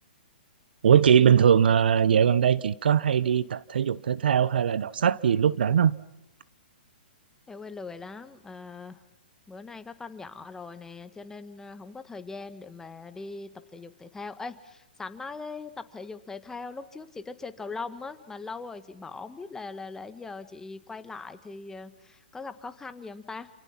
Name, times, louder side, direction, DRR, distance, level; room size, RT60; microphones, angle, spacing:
voice 1, 0.8-6.0, right 8 dB, 70° right, 0.9 m, -21 dB
voice 2, 7.5-9.0 9.5-23.5, left 4 dB, 10° left, 1.6 m, -40 dB
28.5 x 28.0 x 6.0 m
hypercardioid pair, 125°, 6 cm